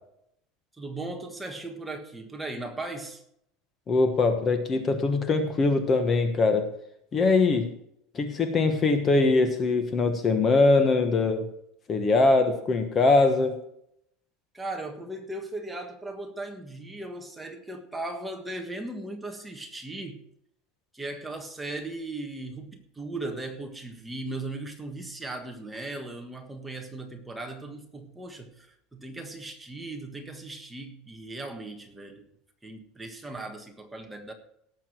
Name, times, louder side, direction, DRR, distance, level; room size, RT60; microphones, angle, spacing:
voice 1, 0.8-3.2 14.5-20.2 20.9-32.3 32.6-34.3, right 2 dB, 5° right, 3 dB, 1.5 m, -37 dB
voice 2, 3.9-6.7 7.1-7.7 8.1-11.5 11.9-13.6, left 3 dB, 25° left, 7 dB, 1.3 m, -22 dB
17.5 x 7.1 x 4.5 m, 0.75 s
supercardioid pair, 160°, 0 cm